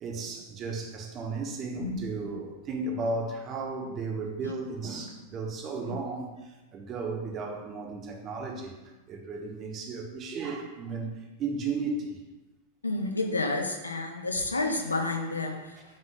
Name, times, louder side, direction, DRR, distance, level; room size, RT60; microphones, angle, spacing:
voice 1, 0.0-6.4 6.7-8.8 9.1-11.1 11.4-12.2 15.8-15.9, right 3 dB, 30° right, 1 dB, 0.8 m, -34 dB
voice 2, 12.8-15.6, left 2 dB, 80° left, 3 dB, 0.5 m, -29 dB
5.2 x 2.6 x 3.7 m, 1.1 s
figure-of-eight pair, 90°, 0 cm